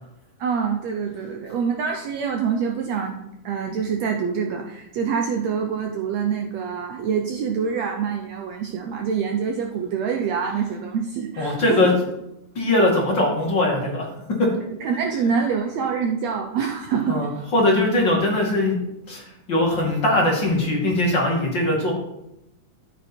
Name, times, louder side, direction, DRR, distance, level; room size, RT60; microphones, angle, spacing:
voice 1, 0.4-3.2 3.4-11.9 14.8-17.5, right 6 dB, 70° right, 3 dB, 1.8 m, -25 dB
voice 2, 11.4-11.9 12.5-14.1 14.4-14.5 17.1-21.9, left 1 dB, 35° left, -2 dB, 2.8 m, -21 dB
12.5 x 9.0 x 4.5 m, 0.88 s
omnidirectional pair, 3.7 m